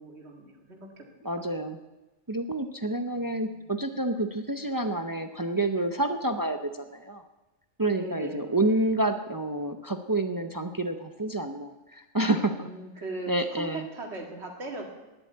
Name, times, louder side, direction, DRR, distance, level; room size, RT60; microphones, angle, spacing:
voice 1, 0.0-1.1 1.4-1.6 3.1-3.7 7.9-8.8 12.6-14.8, right 2 dB, 55° right, 1 dB, 2.2 m, -40 dB
voice 2, 1.2-1.8 2.3-7.3 7.8-12.5 13.3-13.8, right 2 dB, 35° right, 7 dB, 0.3 m, -28 dB
11.0 x 8.2 x 8.5 m, 1.1 s
omnidirectional pair, 1.3 m